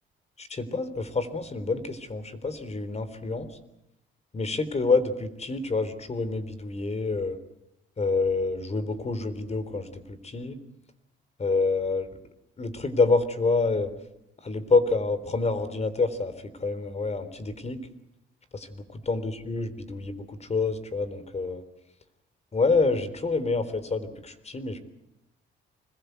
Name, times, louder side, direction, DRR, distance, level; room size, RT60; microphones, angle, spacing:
voice 1, 0.4-3.5 4.3-7.4 8.0-10.6 11.4-12.1 12.6-13.9 14.4-16.3 16.6-17.8 18.5-21.6 22.5-24.8, left 3 dB, 35° left, 13 dB, 3.7 m, -27 dB
26.0 x 21.5 x 8.2 m, 0.86 s
cardioid pair, 90°, 20 cm